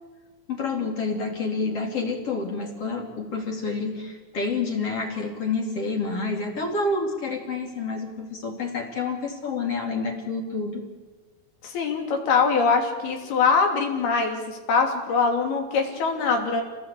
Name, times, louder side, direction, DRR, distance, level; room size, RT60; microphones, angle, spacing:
voice 1, 0.5-10.8, left 3 dB, 40° left, 1 dB, 3.5 m, -28 dB
voice 2, 11.6-16.6, left 5 dB, 90° left, 3 dB, 4.8 m, -23 dB
27.0 x 18.5 x 8.5 m, 1.3 s
omnidirectional pair, 4.3 m